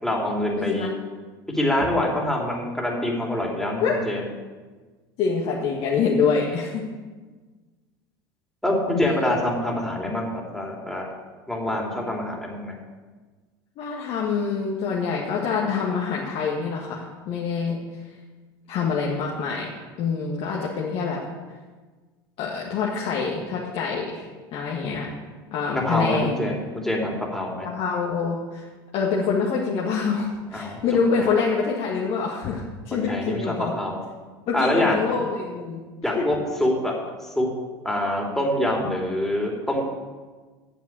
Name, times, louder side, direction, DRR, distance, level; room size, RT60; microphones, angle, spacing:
voice 1, 0.0-0.9 1.5-4.3 8.6-11.0 11.5-12.7 25.7-27.7 30.5-30.8 32.9-33.4 33.7-34.0 34.5-35.2 36.0-36.9 37.2-37.5 37.8-39.8, left 1 dB, 5° left, -1 dB, 3.0 m, -25 dB
voice 2, 0.5-0.9 3.8-4.0 5.2-6.8 9.0-9.3 13.8-17.8 18.7-19.7 20.0-21.2 22.4-25.1 25.5-26.6 27.6-28.7 28.9-33.7 34.5-35.8 36.1-36.2, left 5 dB, 55° left, -3 dB, 1.8 m, -26 dB
9.2 x 7.1 x 8.7 m, 1.4 s
hypercardioid pair, 85°, 12 cm